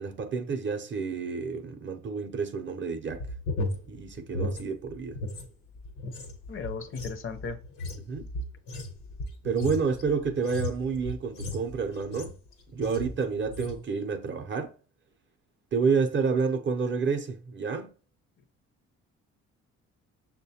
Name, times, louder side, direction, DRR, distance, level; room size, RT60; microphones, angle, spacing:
voice 1, 0.0-3.3 3.9-5.2 8.0-8.3 9.4-12.3 12.7-14.7 15.7-17.9, right 5 dB, 40° right, 0.5 m, -29 dB
sound 1, 3.1-5.5 5.8-12.5 12.8-13.2 13.5-13.8, left 1 dB, 85° left, 0.9 m, -35 dB
voice 2, 6.5-7.6, left 5 dB, 45° left, 0.5 m, -36 dB
6.2 x 2.2 x 2.7 m
cardioid pair, 90°, 30 cm